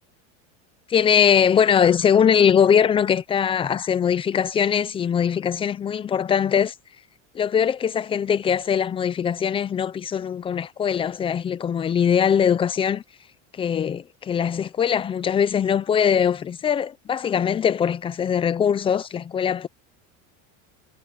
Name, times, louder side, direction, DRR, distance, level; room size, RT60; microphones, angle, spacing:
voice 1, 0.9-6.7 7.3-13.0 13.5-19.7, left 8 dB, 15° left, 0.6 m, -21 dB
cardioid pair, 165°, 34 cm